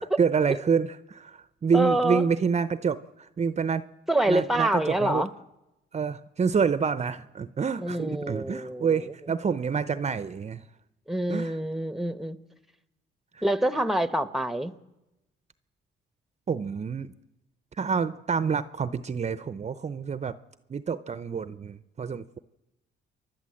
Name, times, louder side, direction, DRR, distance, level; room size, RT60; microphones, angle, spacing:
voice 1, 0.2-3.9 4.3-5.2 5.9-10.6 11.3-11.6 13.3-13.4 16.5-17.1 17.7-20.4 20.7-22.4, right 6 dB, 35° right, 14 dB, 0.7 m, -27 dB
voice 2, 1.7-2.2 4.1-5.3 7.8-9.1 11.1-12.4 13.4-14.7, right 1 dB, ahead, 13 dB, 1.0 m, -26 dB
29.0 x 12.0 x 7.8 m, 0.97 s
cardioid pair, 90°, 20 cm